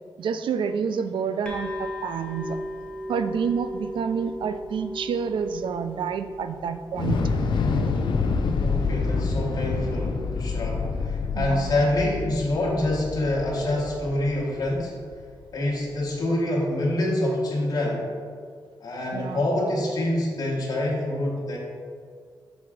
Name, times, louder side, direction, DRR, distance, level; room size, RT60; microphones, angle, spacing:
voice 1, 0.2-2.6 3.1-7.2 11.3-11.7 19.1-19.4, right 6 dB, 75° right, 10 dB, 0.4 m, -28 dB
sound 1, 1.4-8.9, equal, 10° left, 1.0 m, -37 dB
Thunder / Explosion, 6.9-15.2, left 4 dB, 70° left, 0.5 m, -27 dB
voice 2, 8.6-15.0 15.5-18.0 18.8-21.6, left 1 dB, 50° left, -4 dB, 1.2 m, -26 dB
6.1 x 3.7 x 4.8 m, 2.1 s
wide cardioid pair, 140°, 8 cm